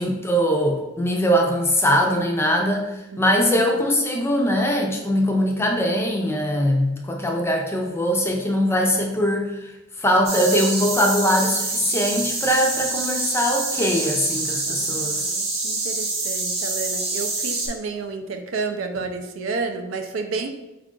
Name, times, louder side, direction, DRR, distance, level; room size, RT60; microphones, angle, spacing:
voice 1, 0.0-9.7 10.0-15.3, equal, 10° left, 1 dB, 0.4 m, -21 dB
voice 2, 3.1-3.7 14.7-20.5, right 4 dB, 80° right, 7 dB, 0.4 m, -31 dB
sound 1, 10.2-17.7, right 3 dB, 30° right, 0.8 m, -26 dB
4.5 x 2.5 x 3.7 m, 0.96 s
head